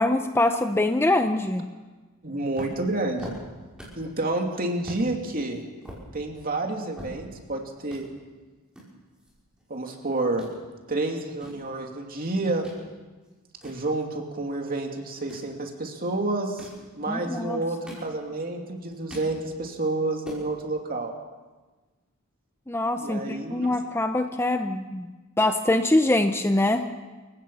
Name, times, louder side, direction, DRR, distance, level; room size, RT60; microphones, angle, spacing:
voice 1, 0.0-1.6 17.1-17.6 22.7-25.1 25.4-26.8, left 1 dB, 10° left, 7 dB, 0.7 m, -24 dB
voice 2, 2.2-3.4 4.0-5.6 6.1-8.0 9.7-10.5 10.9-12.7 13.6-16.7 17.0-21.1 23.0-23.8, right 2 dB, 40° right, 2 dB, 2.7 m, -29 dB
sound 1, 2.6-4.1 4.4-4.5 4.8-5.0 5.5-7.5 7.8-8.0 8.7-9.9 10.2-10.5 11.1-12.8 13.2-14.5 15.1-15.5 16.4-16.9 17.5-18.5 18.8-19.3 19.7-19.8 20.1-20.5, right 1 dB, 5° right, 5.9 m, -43 dB
29.0 x 16.0 x 5.6 m, 1.3 s
head